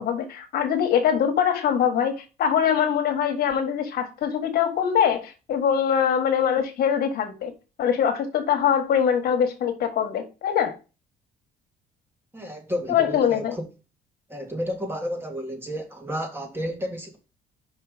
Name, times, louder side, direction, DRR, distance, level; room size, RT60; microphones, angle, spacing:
voice 1, 0.0-7.5 7.8-10.8 12.9-13.6, left 8 dB, 65° left, 1.5 m, -23 dB
voice 2, 12.3-13.7 14.3-17.2, equal, 15° right, 1.8 m, -31 dB
5.6 x 4.9 x 5.0 m
cardioid pair, 110°, 17 cm